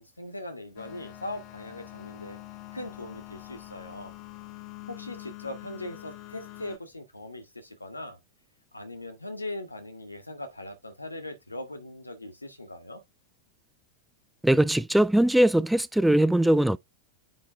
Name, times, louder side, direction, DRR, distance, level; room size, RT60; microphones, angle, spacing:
voice 1, 0.0-2.4 2.7-4.1 4.9-8.2 8.7-13.0, left 1 dB, 85° left, 1.8 m, -40 dB
sound 1, 0.8-6.8, left 16 dB, 40° left, 1.2 m, -45 dB
voice 2, 14.4-16.8, right 1 dB, 5° right, 0.3 m, -21 dB
9.7 x 3.7 x 3.6 m
figure-of-eight pair, 90°, 0 cm